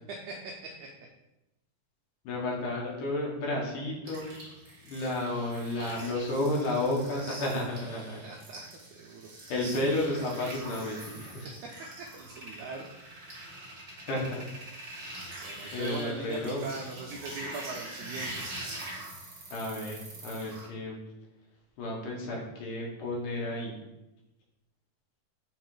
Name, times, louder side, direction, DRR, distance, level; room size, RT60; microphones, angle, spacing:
voice 1, 0.1-0.9 8.0-9.3 11.6-11.7 12.0-12.9 15.4-18.4, right 3 dB, 85° right, 1 dB, 1.7 m, -41 dB
voice 2, 2.2-4.3 4.8-8.2 9.5-11.5 14.0-14.5 15.7-16.6 19.5-21.0 21.8-23.8, left 1 dB, 65° left, -2 dB, 2.7 m, -32 dB
sound 1, 4.1-20.7, right 1 dB, 50° right, 1.1 m, -44 dB
6.5 x 3.8 x 4.8 m, 0.96 s
omnidirectional pair, 4.1 m